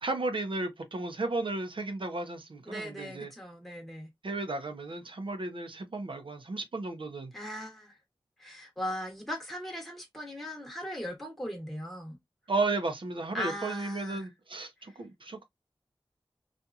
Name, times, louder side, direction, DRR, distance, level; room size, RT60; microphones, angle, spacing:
voice 1, 0.0-3.3 4.2-7.3 12.5-15.4, right 3 dB, 70° right, 0.7 m, -34 dB
voice 2, 2.7-4.1 7.3-7.9 8.4-12.2 13.3-14.3, left 1 dB, ahead, 1.1 m, -38 dB
2.8 x 2.5 x 2.3 m
wide cardioid pair, 65°, 9 cm